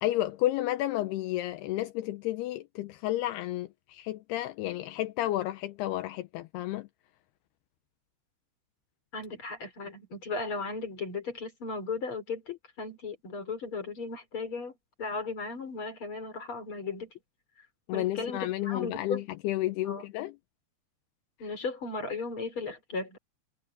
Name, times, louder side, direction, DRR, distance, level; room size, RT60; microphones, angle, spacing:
voice 1, 0.0-6.9 17.9-20.4, left 15 dB, 80° left, 2.4 m, -31 dB
voice 2, 9.1-14.7 15.0-17.1 17.9-19.2 19.8-20.0 21.4-23.2, left 4 dB, 30° left, 5.0 m, -36 dB
omnidirectional pair, 5.4 m